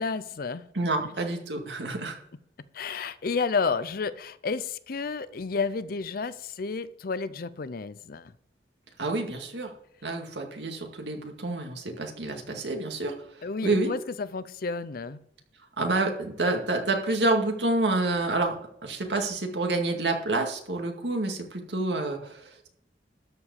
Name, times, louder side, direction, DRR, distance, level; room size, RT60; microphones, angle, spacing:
voice 1, 0.0-0.7 2.7-8.3 13.4-15.2, left 4 dB, 55° left, 0.5 m, -31 dB
voice 2, 0.7-2.2 9.0-9.7 10.0-13.1 13.6-13.9 15.8-18.5 18.8-22.7, right 2 dB, 80° right, 2.1 m, -28 dB
13.0 x 4.9 x 8.1 m
head